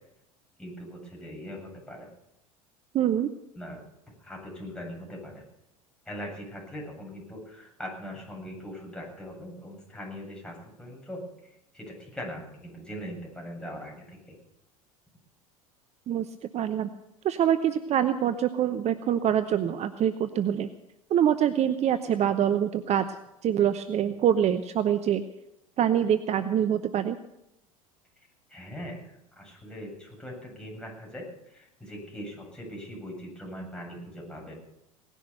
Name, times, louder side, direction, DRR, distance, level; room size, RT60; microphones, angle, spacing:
voice 1, 0.6-2.1 3.5-3.8 4.2-5.4 6.1-14.4 28.2-34.6, equal, 5° left, -1 dB, 7.8 m, -41 dB
voice 2, 2.9-3.3 16.1-16.3 16.5-16.9 17.2-20.7 21.1-23.1 23.4-25.2 25.8-27.2, right 10 dB, 40° right, 11 dB, 0.9 m, -25 dB
18.5 x 11.0 x 6.9 m, 0.86 s
hypercardioid pair, 75°, 18 cm